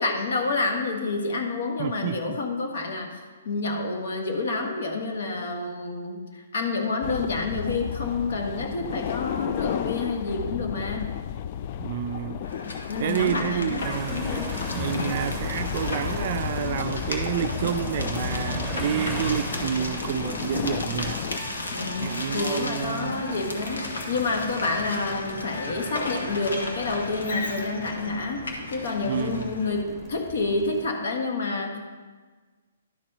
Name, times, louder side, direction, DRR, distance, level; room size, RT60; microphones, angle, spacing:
voice 1, 0.0-3.2 3.5-11.2 12.9-15.1 21.7-28.4 28.7-31.8, left 3 dB, 70° left, 1.6 m, -29 dB
voice 2, 1.8-2.4 11.8-12.4 13.0-14.3 14.7-21.2 22.0-23.2 29.0-29.6, right 9 dB, 45° right, 0.4 m, -29 dB
sound 1, 7.0-21.4, left 10 dB, 40° left, 0.3 m, -33 dB
sound 2, 12.4-29.7, left 2 dB, 90° left, 1.5 m, -35 dB
sound 3, 13.8-30.9, equal, ahead, 1.0 m, -39 dB
11.5 x 4.3 x 5.6 m
hypercardioid pair, 150°, 0 cm